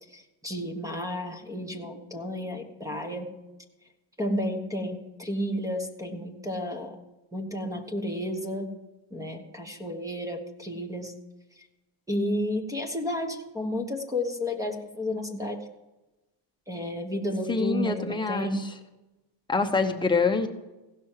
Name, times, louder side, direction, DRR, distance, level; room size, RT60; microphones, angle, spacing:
voice 1, 0.1-3.4 4.2-7.0 7.3-8.8 9.1-11.2 11.6-11.7 12.1-15.7 16.7-18.7, left 1 dB, 10° right, 5 dB, 1.3 m, -32 dB
voice 2, 17.5-18.6 19.5-20.5, left 4 dB, 10° left, 3 dB, 1.0 m, -25 dB
16.0 x 6.3 x 7.3 m, 1.0 s
cardioid pair, 140°, 41 cm